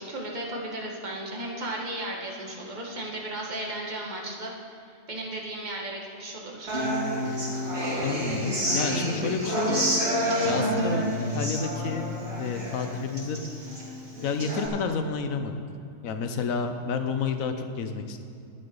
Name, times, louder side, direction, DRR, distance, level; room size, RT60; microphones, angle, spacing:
voice 1, 0.0-4.5 5.1-6.9, right 1 dB, 35° right, -2 dB, 1.7 m, -35 dB
Human voice / Acoustic guitar, 6.7-14.7, equal, 55° right, 3.1 m, -28 dB
voice 2, 8.0-9.8 10.4-12.1 12.4-13.4 14.2-15.5 16.0-18.2, left 5 dB, 85° left, 7 dB, 1.2 m, -30 dB
11.5 x 10.0 x 5.4 m, 2.6 s
omnidirectional pair, 1.4 m